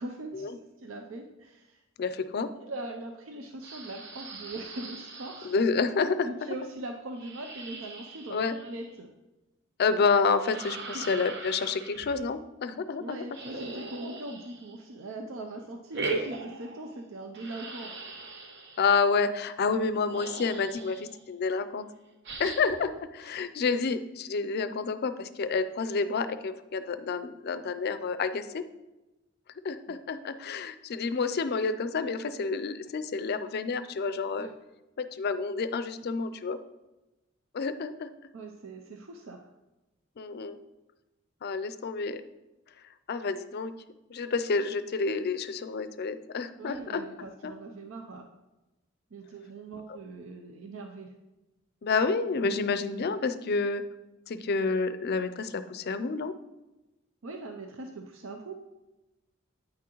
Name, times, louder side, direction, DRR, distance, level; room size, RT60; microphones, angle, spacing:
voice 1, 0.0-1.8 2.6-5.5 6.2-9.1 10.9-11.1 13.0-17.9 22.9-23.3 23.7-23.9 34.4-34.5 38.3-39.5 46.6-48.3 49.1-51.1 57.2-58.5, right 2 dB, 75° right, 4 dB, 0.6 m, -41 dB
voice 2, 2.0-2.5 5.4-6.3 8.3-8.6 9.8-13.2 18.8-21.9 22.4-22.9 23.2-28.6 29.6-34.5 35.0-36.6 37.5-38.1 40.2-40.6 41.4-42.2 43.1-43.7 44.1-47.0 47.4-47.5 51.8-53.8 54.3-56.3, left 4 dB, 50° left, 12 dB, 0.4 m, -29 dB
sound 1, 3.6-5.6 7.1-9.0 10.4-12.2 13.3-15.0 15.9-17.0 17.3-18.9 19.8-19.9 20.1-21.2 22.2-22.8, right 3 dB, 60° right, 1.0 m, -40 dB
8.8 x 6.0 x 3.0 m, 1.0 s
head